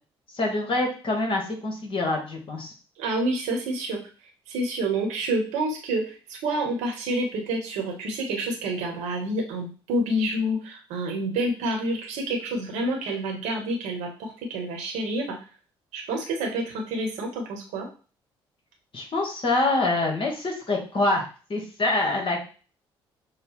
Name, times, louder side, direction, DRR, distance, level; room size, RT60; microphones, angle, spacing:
voice 1, 0.3-2.7 18.9-21.2 21.5-22.5, left 2 dB, 40° left, 1 dB, 1.6 m, -25 dB
voice 2, 3.0-4.0 4.5-15.4 15.9-17.9, right 1 dB, 60° right, 1 dB, 1.2 m, -28 dB
6.6 x 2.2 x 3.1 m, 0.37 s
figure-of-eight pair, 50°, 14 cm